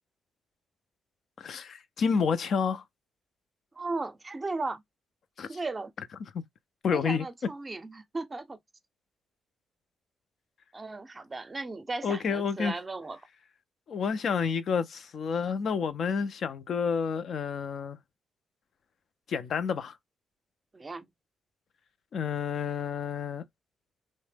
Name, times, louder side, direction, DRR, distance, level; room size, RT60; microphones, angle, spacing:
voice 1, 1.4-2.8 5.4-5.5 6.8-7.3 12.0-12.7 13.9-18.0 19.3-20.0 22.1-23.4, left 6 dB, 60° left, 0.4 m, -29 dB
voice 2, 3.8-4.8 5.5-5.9 6.9-8.6 10.7-13.2 20.7-21.1, right 3 dB, 30° right, 0.5 m, -36 dB
2.7 x 2.0 x 3.2 m
hypercardioid pair, 45°, 0 cm